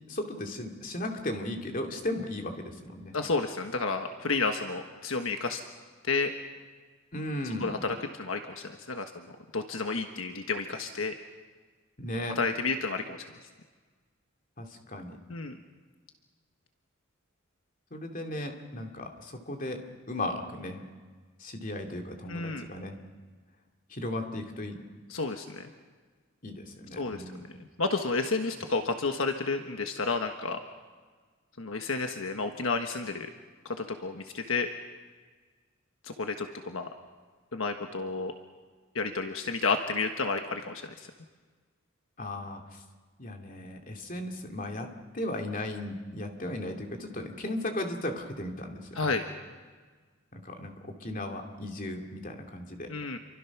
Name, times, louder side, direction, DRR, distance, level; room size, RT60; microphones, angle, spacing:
voice 1, 0.1-3.1 7.1-7.7 12.0-12.4 14.6-15.2 17.9-19.8 20.1-20.8 21.4-22.9 23.9-24.8 26.4-27.5 42.2-42.8 43.2-49.1 50.3-52.9, left 1 dB, 40° left, 4 dB, 2.5 m, -36 dB
voice 2, 3.1-5.6 6.1-6.3 7.6-9.1 9.5-11.1 12.4-13.2 15.3-15.6 22.3-22.6 25.1-25.7 27.0-30.6 31.6-33.3 33.6-34.7 36.0-36.9 37.5-38.3 38.9-41.1 48.9-49.2 52.9-53.2, left 4 dB, 75° left, 5 dB, 1.4 m, -31 dB
28.5 x 24.0 x 6.0 m, 1.4 s
head